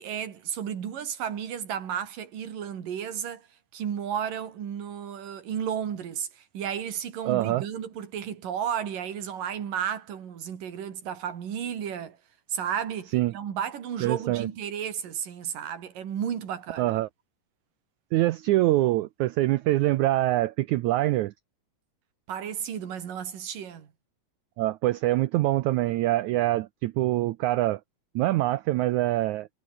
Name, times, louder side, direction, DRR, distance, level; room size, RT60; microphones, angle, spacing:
voice 1, 0.0-3.5 3.7-12.2 12.5-16.8 22.3-23.9, right 8 dB, 65° right, 4.2 m, -33 dB
voice 2, 7.3-7.6 13.1-13.3 14.0-14.5 16.8-17.1 18.1-21.3 24.6-27.8 28.2-29.5, right 16 dB, 85° right, 1.7 m, -24 dB
omnidirectional pair, 4.1 m